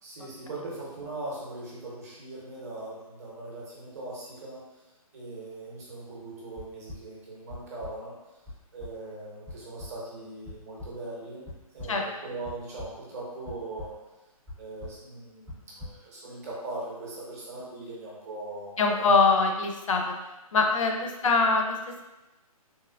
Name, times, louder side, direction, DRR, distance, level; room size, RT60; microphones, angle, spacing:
voice 1, 0.0-4.8 5.1-8.1 8.7-11.4 11.7-13.9 14.6-18.9, right 2 dB, 25° right, -5 dB, 0.7 m, -40 dB
sound 1, 6.6-7.0 7.5-7.9 8.5-8.6 8.8-8.9 9.5-9.6 9.8-9.9 10.5-10.9 11.5-11.9 12.5-13.0 13.5-13.9 14.5-14.6 14.8-15.0 15.5-15.9, left 2 dB, 5° right, 0.4 m, -40 dB
voice 2, 18.8-20.2 20.5-22.1, left 4 dB, 60° left, 2 dB, 0.5 m, -23 dB
3.4 x 2.8 x 2.2 m, 1.0 s
hypercardioid pair, 170°, 19 cm